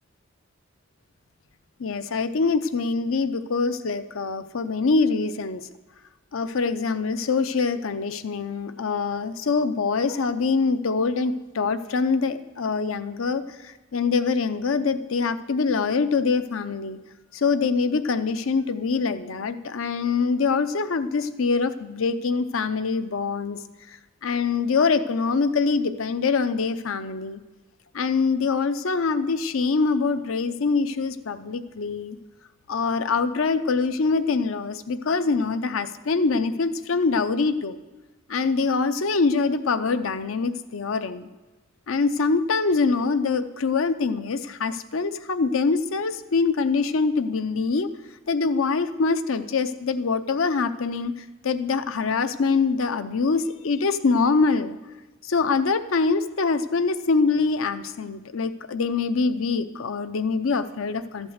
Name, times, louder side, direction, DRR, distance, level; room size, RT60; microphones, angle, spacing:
voice 1, 1.8-5.7 6.3-17.0 17.3-23.6 24.2-27.4 27.9-32.2 32.7-37.8 38.3-41.3 41.9-47.9 48.3-51.1 51.4-54.8 55.2-61.3, left 4 dB, 85° left, 12 dB, 0.6 m, -24 dB
13.0 x 8.2 x 6.4 m, 1.1 s
head